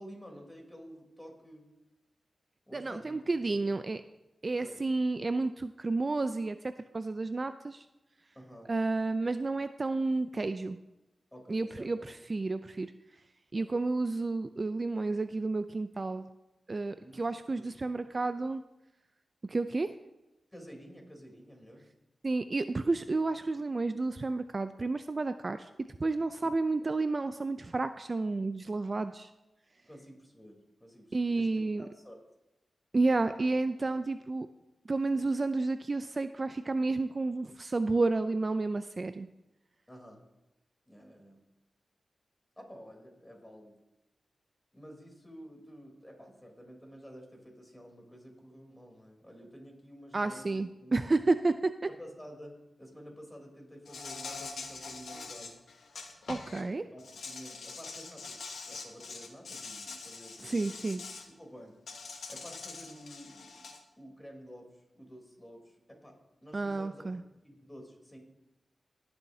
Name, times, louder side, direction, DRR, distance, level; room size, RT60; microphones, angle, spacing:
voice 1, 0.0-1.7 2.7-3.2 3.5-3.6 4.6-4.8 8.3-8.7 11.3-12.0 13.5-13.8 16.9-17.2 17.6-18.0 20.5-21.9 26.4-26.5 29.9-31.5 31.8-32.2 33.1-33.5 33.8-33.9 39.9-40.2 40.9-41.4 42.6-43.8 44.7-50.9 51.9-55.6 56.4-61.0 61.4-61.8 62.3-63.7 64.0-66.1 66.4-68.2, equal, 15° left, 0 dB, 3.5 m, -50 dB
voice 2, 2.7-4.0 4.4-7.8 8.7-10.8 11.5-12.9 13.5-16.3 16.7-18.6 19.4-19.9 22.2-25.7 26.0-29.3 31.1-31.9 32.9-34.5 34.9-39.3 50.1-51.7 56.3-56.8 60.4-61.0 66.5-67.2, right 3 dB, 45° right, 11 dB, 0.4 m, -31 dB
Insect, 53.9-56.6 57.0-61.3 61.9-63.8, left 4 dB, 85° left, 1.2 m, -44 dB
20.0 x 7.1 x 2.8 m, 0.96 s
cardioid pair, 50°, 0 cm